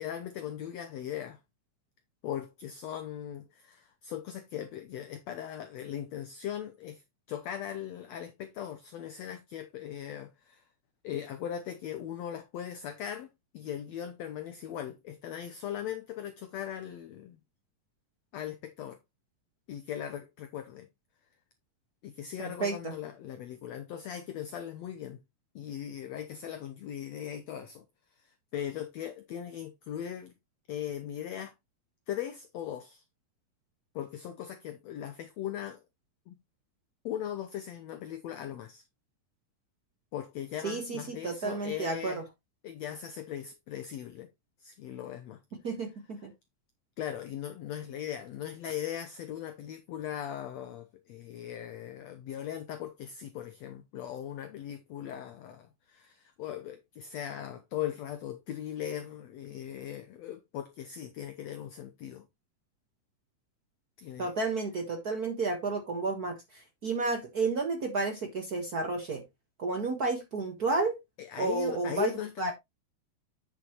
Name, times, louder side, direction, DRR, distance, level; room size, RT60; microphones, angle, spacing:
voice 1, 0.0-1.4 2.2-7.0 7.3-10.6 11.0-13.3 13.5-17.4 18.3-19.0 19.7-20.9 22.0-25.2 25.5-27.8 28.2-30.3 30.7-31.5 32.1-33.0 33.9-35.8 36.3-36.4 37.0-38.8 40.1-42.2 42.6-44.3 44.6-45.4 47.0-62.3 64.0-64.3 71.2-72.5, left 10 dB, 90° left, 1.5 m, -39 dB
voice 2, 22.4-22.9 40.6-42.2 45.6-46.3 64.2-69.2 69.6-70.9 71.4-72.1 72.4-72.5, right 3 dB, 75° right, 0.8 m, -31 dB
8.9 x 7.0 x 3.0 m
omnidirectional pair, 4.0 m